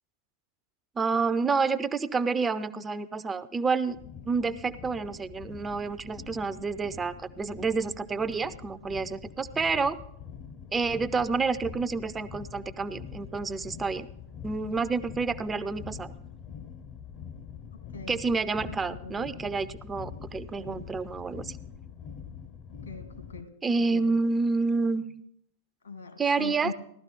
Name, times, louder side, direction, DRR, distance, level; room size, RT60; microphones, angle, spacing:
voice 1, 1.0-4.0 4.3-10.0 10.7-14.1 14.4-16.1 18.1-21.6 23.6-25.2 26.2-26.7, right 4 dB, 15° right, 13 dB, 0.5 m, -29 dB
sound 1, 3.9-23.4, left 7 dB, 35° left, 0.6 m, -44 dB
voice 2, 17.7-18.2 18.7-19.3 22.8-23.5 23.9-24.1 25.8-26.7, left 4 dB, 75° left, 8 dB, 1.7 m, -41 dB
15.5 x 12.0 x 3.8 m, 0.71 s
figure-of-eight pair, 95°, 0 cm